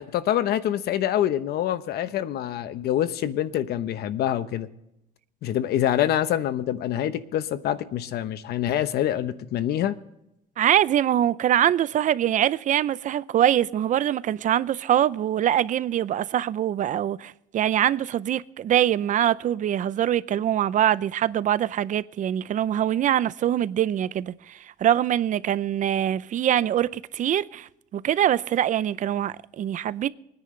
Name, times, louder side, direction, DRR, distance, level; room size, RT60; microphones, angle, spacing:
voice 1, 0.0-4.7 5.4-10.0, left 11 dB, 70° left, 1.0 m, -26 dB
voice 2, 10.6-30.1, right 11 dB, 50° right, 0.6 m, -23 dB
25.0 x 9.8 x 3.2 m
cardioid pair, 110°, 17 cm